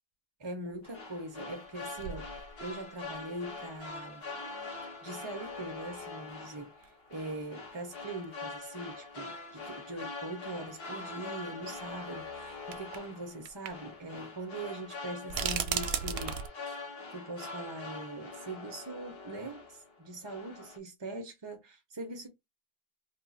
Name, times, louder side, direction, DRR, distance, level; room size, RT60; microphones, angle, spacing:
voice 1, 0.4-4.3 5.0-16.8 17.1-22.3, right 2 dB, 30° right, 0.6 m, -42 dB
sound 1, 0.7-0.8 1.6-1.7 2.0-2.9 3.6-3.7 5.4-5.5 6.8-6.9 7.1-7.2 8.2-8.3 8.7-8.8 10.2-10.3 11.7-11.8 12.7-13.1 13.5-13.7 14.0-14.1 15.3-16.5, right 7 dB, 70° right, 0.7 m, -35 dB
sound 2, 0.8-19.9 20.2-20.8, left 3 dB, 65° left, 1.2 m, -44 dB
2.6 x 2.4 x 4.0 m
omnidirectional pair, 1.1 m